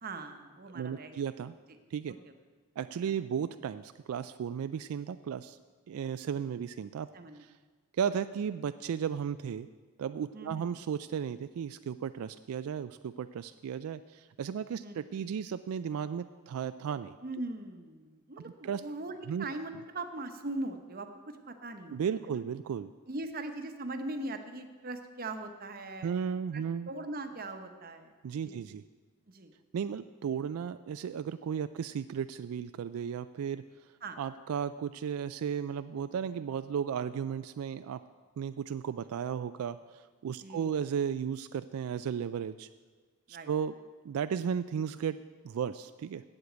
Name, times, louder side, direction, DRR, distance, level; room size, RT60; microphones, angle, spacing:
voice 1, 0.0-1.2 2.1-2.3 3.0-3.2 7.1-7.4 10.3-10.6 14.8-15.0 17.2-21.1 21.5-22.0 22.2-22.4 23.1-26.1 26.5-28.1 28.4-28.6 29.3-29.5 34.0-34.2 40.4-40.8 43.3-43.5, right 2 dB, 40° right, 7 dB, 0.8 m, -40 dB
voice 2, 0.7-1.5 1.9-2.1 2.8-5.6 5.9-7.1 7.4-7.5 8.0-9.7 10.0-17.2 18.6-18.8 19.3-19.5 21.9-22.9 26.0-26.9 28.2-28.8 29.7-33.6 34.2-38.0 38.4-42.7 43.3-43.7 44.0-45.2 45.4-46.2, right 7 dB, 85° right, 12 dB, 0.3 m, -35 dB
8.4 x 8.0 x 7.9 m, 1.4 s
head